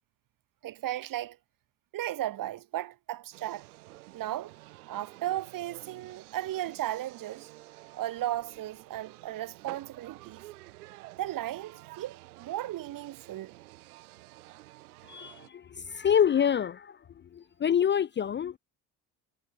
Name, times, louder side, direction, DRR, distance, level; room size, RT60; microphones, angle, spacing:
voice 1, 0.6-1.4 1.9-3.7 4.1-4.5 4.9-7.5 8.0-10.4 11.2-13.5, right 13 dB, 50° right, 1.1 m, -35 dB
sound 1, 3.3-15.5, right 19 dB, 85° right, 3.7 m, -50 dB
voice 2, 15.1-17.0 17.3-18.6, left 8 dB, 25° left, 0.5 m, -27 dB
hypercardioid pair, 70°, 43 cm